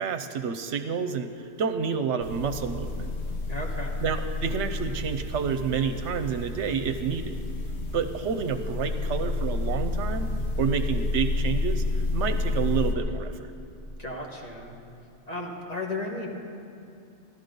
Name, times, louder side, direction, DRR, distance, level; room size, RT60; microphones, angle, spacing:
voice 1, 0.0-3.1 4.0-7.4 7.9-10.3 10.6-13.5, right 6 dB, 75° right, 9 dB, 0.9 m, -29 dB
sound 1, 2.2-12.9, left 2 dB, 65° left, 1.3 m, -30 dB
voice 2, 3.5-4.0 14.0-14.7 15.3-16.3, left 2 dB, 35° left, -1 dB, 1.6 m, -34 dB
14.5 x 12.0 x 5.3 m, 2.5 s
omnidirectional pair, 1.2 m